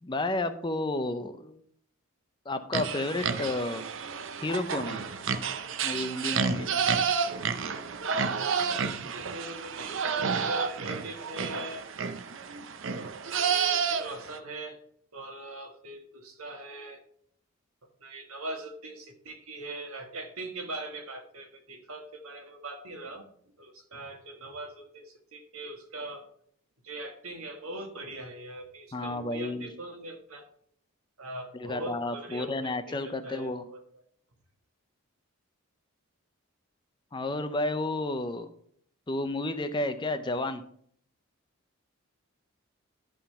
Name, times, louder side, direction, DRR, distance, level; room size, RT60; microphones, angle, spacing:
voice 1, 0.0-1.6 2.5-3.8 4.4-5.0 5.8-6.7 28.9-29.7 31.5-33.6 37.1-38.5 39.1-40.6, left 2 dB, 20° left, 10 dB, 0.5 m, -31 dB
sound 1, 2.7-14.4, right 6 dB, 55° right, 0.5 m, -30 dB
voice 2, 9.0-11.8 13.0-14.8 15.1-17.0 18.0-23.2 23.6-26.2 26.8-30.4 31.2-33.8, right 2 dB, 75° right, 4 dB, 1.5 m, -41 dB
11.0 x 3.7 x 5.6 m, 0.62 s
head